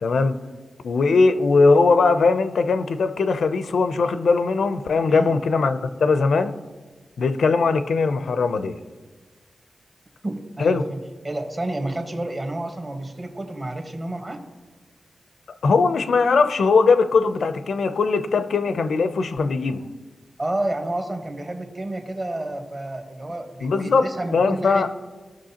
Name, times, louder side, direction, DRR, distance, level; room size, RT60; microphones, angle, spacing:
voice 1, 0.0-0.4 0.8-6.5 7.2-8.8 10.6-10.8 15.6-19.8 23.6-24.9, left 4 dB, 85° left, 0.5 m, -20 dB
voice 2, 10.2-11.0 11.2-14.4 20.4-24.9, right 1 dB, 30° right, 1.3 m, -30 dB
17.0 x 6.2 x 2.9 m
wide cardioid pair, 125°, 0 cm